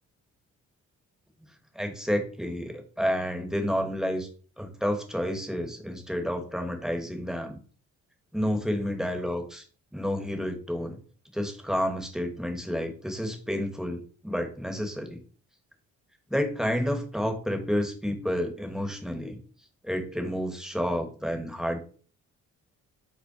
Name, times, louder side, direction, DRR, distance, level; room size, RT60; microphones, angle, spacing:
voice 1, 1.7-4.3 4.6-7.6 8.3-9.6 9.9-11.0 11.3-15.2 16.3-19.4 19.8-21.8, equal, ahead, 5 dB, 1.0 m, -30 dB
5.2 x 2.1 x 4.8 m, 0.42 s
cardioid pair, 90°, 30 cm